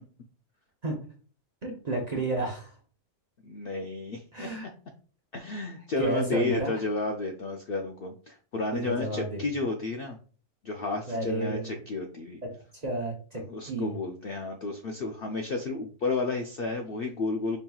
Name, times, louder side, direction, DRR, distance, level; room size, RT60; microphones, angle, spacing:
voice 1, 1.6-2.7 4.3-4.7 6.0-6.7 8.7-9.5 11.1-11.8 12.4-13.9, right 1 dB, 40° right, 0 dB, 0.6 m, -31 dB
voice 2, 3.4-4.5 5.3-10.2 10.6-12.4 13.5-17.6, left 3 dB, 90° left, 3 dB, 0.5 m, -32 dB
5.3 x 2.8 x 2.3 m, 0.40 s
omnidirectional pair, 1.6 m